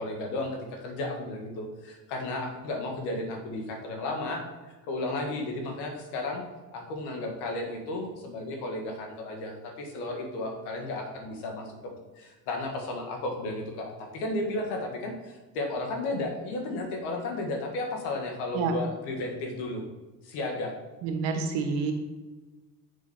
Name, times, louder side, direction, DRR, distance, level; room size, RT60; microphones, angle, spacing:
voice 1, 0.0-6.4 6.7-11.8 12.2-19.8 20.2-20.7, left 2 dB, 80° left, 2 dB, 1.8 m, -33 dB
voice 2, 21.0-21.9, right 5 dB, 85° right, 4 dB, 1.5 m, -28 dB
7.3 x 5.2 x 4.4 m, 1.2 s
supercardioid pair, 80°, 39 cm